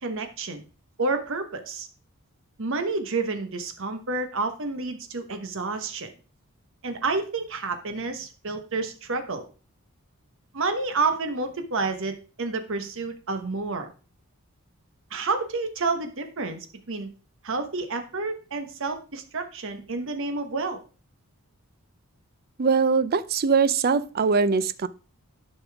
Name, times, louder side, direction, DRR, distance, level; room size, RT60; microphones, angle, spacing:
voice 1, 0.0-0.7 1.0-1.9 2.6-6.1 6.8-9.4 10.5-13.9 15.1-17.1 17.4-20.8, right 3 dB, 60° right, 1.1 m, -29 dB
voice 2, 22.6-24.9, right 5 dB, 45° right, 0.4 m, -22 dB
10.5 x 5.4 x 3.4 m
head